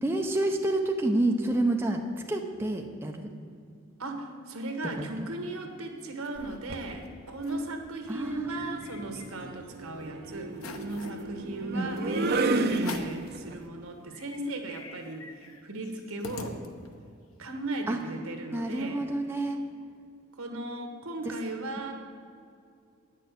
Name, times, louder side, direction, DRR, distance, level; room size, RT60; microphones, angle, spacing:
voice 1, 0.0-2.0 2.3-3.3 5.2-5.3 8.1-8.8 11.7-11.9 17.9-18.0 18.5-19.6 21.2-21.3, right 2 dB, 10° right, 2 dB, 0.6 m, -28 dB
voice 2, 4.0-10.5 10.8-16.6 17.4-19.1 20.4-21.9, right 2 dB, 75° right, 4 dB, 1.4 m, -37 dB
sound 1, 5.8-6.6 7.0-7.1 7.3-7.7 8.1-9.7 10.1-10.2 10.5-11.2 12.0-12.1 12.7-13.3 13.7-13.8 14.1-17.1, left 3 dB, 75° left, 0.8 m, -44 dB
sound 2, 6.4-6.9 8.3-13.5, right 2 dB, 50° right, 0.6 m, -32 dB
9.1 x 6.4 x 8.3 m, 2.4 s
head